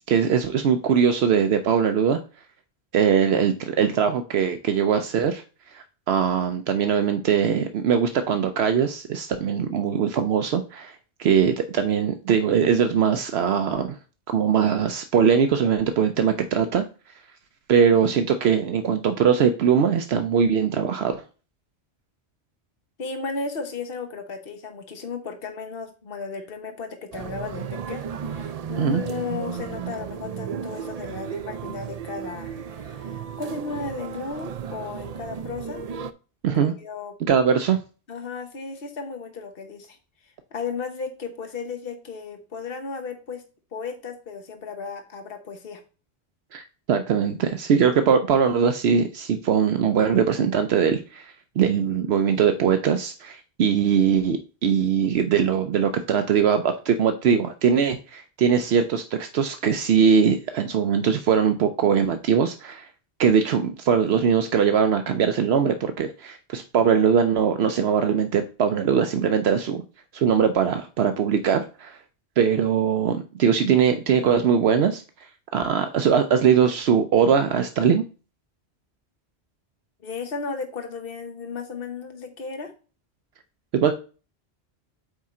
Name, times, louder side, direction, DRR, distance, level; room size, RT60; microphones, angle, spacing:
voice 1, 0.1-2.2 2.9-5.4 5.7-14.0 14.3-16.8 17.7-21.2 28.8-29.0 36.4-36.7 37.3-37.8 46.5-62.9 63.2-69.8 70.1-72.0 72.4-75.0 75.5-78.0 83.7-83.9, right 7 dB, 75° right, 8 dB, 0.9 m, -21 dB
voice 2, 23.0-35.8 36.5-37.1 38.1-40.0 40.2-43.4 43.7-45.8 80.0-82.7, left 4 dB, 60° left, 5 dB, 1.3 m, -34 dB
sound 1, 27.1-36.1, right 7 dB, 50° right, 0.4 m, -34 dB
8.6 x 3.7 x 4.3 m, 0.35 s
omnidirectional pair, 1.1 m